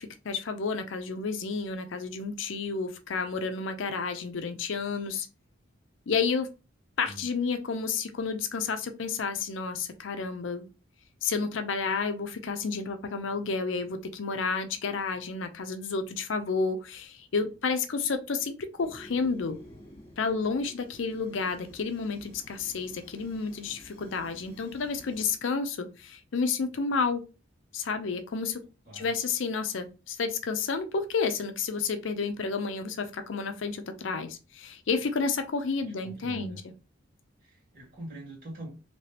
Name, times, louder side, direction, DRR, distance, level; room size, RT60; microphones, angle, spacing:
voice 1, 0.0-5.3 6.1-6.5 7.0-10.7 11.2-19.6 20.2-27.3 27.7-28.6 28.9-36.6, left 4 dB, 75° left, 8 dB, 0.5 m, -31 dB
Fire, 18.8-25.4, left 1 dB, 30° left, 1.2 m, -52 dB
voice 2, 36.0-36.6 37.4-38.7, right 1 dB, 50° right, -3 dB, 1.9 m, -43 dB
3.3 x 2.9 x 2.8 m, 0.31 s
head